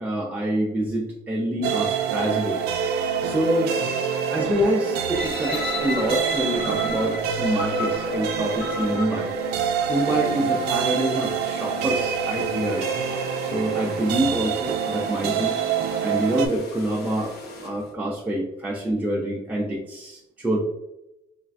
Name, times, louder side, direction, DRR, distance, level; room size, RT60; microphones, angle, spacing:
voice 1, 0.0-2.6 3.2-3.8 4.3-9.3 9.9-12.9 13.4-15.6 16.0-17.3 17.6-20.6, right 1 dB, 10° right, -4 dB, 0.3 m, -26 dB
sound 1, 1.6-16.5, right 7 dB, 75° right, 0.4 m, -26 dB
sound 2, 5.1-10.1 10.6-10.7, left 3 dB, 65° left, 1.3 m, -33 dB
sound 3, 9.9-17.9, left 2 dB, 80° left, 0.9 m, -41 dB
3.1 x 2.2 x 2.4 m, 0.91 s
cardioid pair, 150°, 17 cm